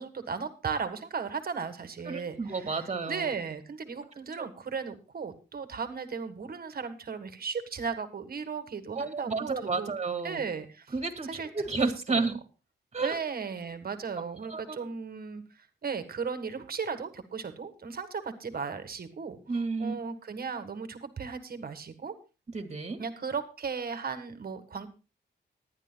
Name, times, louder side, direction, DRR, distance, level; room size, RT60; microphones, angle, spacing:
voice 1, 0.0-2.4 3.1-9.9 10.2-10.9 11.3-11.5 11.8-12.3 13.0-19.4 19.8-22.2 23.0-24.9, right 5 dB, 55° right, 9 dB, 1.6 m, -36 dB
voice 2, 2.0-3.3 4.3-4.5 8.9-10.4 10.9-12.4 12.9-13.2 14.4-14.8 19.5-19.9 22.5-23.0, right 4 dB, 35° right, 7 dB, 2.0 m, -31 dB
19.5 x 11.0 x 2.2 m, 0.31 s
wide cardioid pair, 100°, 18 cm